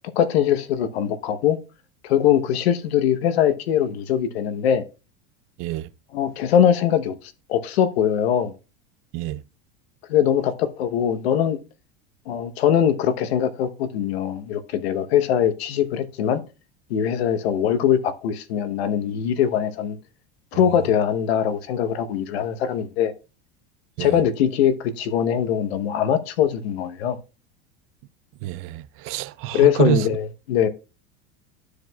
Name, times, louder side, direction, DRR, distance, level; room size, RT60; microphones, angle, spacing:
voice 1, 0.2-1.6 2.0-4.8 6.1-7.1 7.5-8.5 10.1-11.6 12.3-16.4 16.9-20.0 20.5-23.1 24.0-27.2 29.5-30.7, left 9 dB, 85° left, 1.0 m, -21 dB
voice 2, 28.4-30.0, right 15 dB, 45° right, 0.4 m, -26 dB
13.0 x 4.9 x 2.2 m
supercardioid pair, 130°, 31 cm